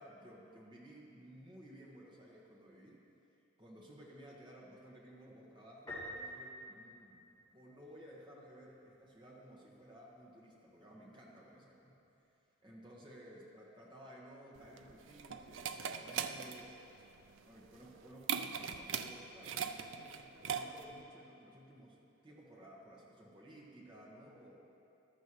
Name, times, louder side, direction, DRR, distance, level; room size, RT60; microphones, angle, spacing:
voice 1, 0.0-3.0 3.6-7.2 7.5-12.0 12.6-16.8 17.4-22.0 22.2-24.6, equal, 20° right, -4 dB, 1.6 m, -56 dB
Piano, 5.9-7.7, equal, 15° left, 2.2 m, -47 dB
sound 1, 14.6-21.0, right 7 dB, 70° right, 0.4 m, -41 dB
14.5 x 11.5 x 3.2 m, 2.8 s
head